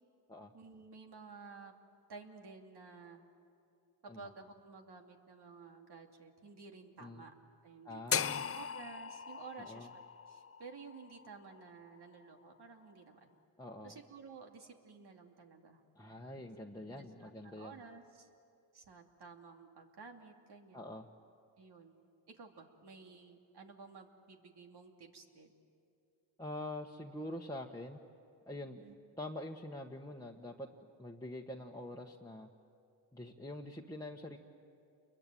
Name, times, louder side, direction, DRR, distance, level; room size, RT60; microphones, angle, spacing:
voice 1, 0.5-1.7 2.1-3.2 4.0-7.3 7.6-13.3 13.8-15.8 16.9-18.3 18.7-20.9 21.6-22.0 22.3-25.5 28.8-28.9, right 4 dB, 70° right, 3 dB, 2.6 m, -53 dB
voice 2, 7.8-8.4 9.7-9.9 13.6-14.0 15.9-17.8 20.7-21.1 26.4-28.0 28.5-28.8 29.2-30.7 31.0-32.5 33.1-34.4, left 1 dB, 10° left, -2 dB, 1.3 m, -45 dB
sound 1, 8.1-12.2, left 7 dB, 35° left, 0.6 m, -39 dB
29.0 x 22.5 x 9.1 m, 2.5 s
cardioid pair, 85°, 41 cm